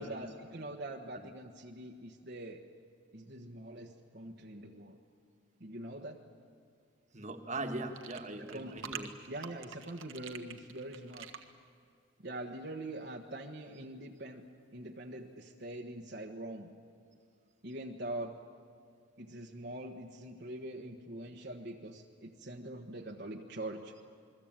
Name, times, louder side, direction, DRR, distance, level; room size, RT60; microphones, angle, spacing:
voice 1, 0.0-2.6 3.1-5.0 5.6-6.2 8.4-8.9 9.2-11.3 12.2-14.4 14.7-16.7 17.6-18.4 19.2-23.9, right 1 dB, 50° right, 1 dB, 1.3 m, -43 dB
voice 2, 7.1-9.1, right 2 dB, 35° right, 6 dB, 1.7 m, -40 dB
sound 1, 7.9-11.5, right 8 dB, 75° right, 1.6 m, -46 dB
28.0 x 21.5 x 9.0 m, 2.3 s
head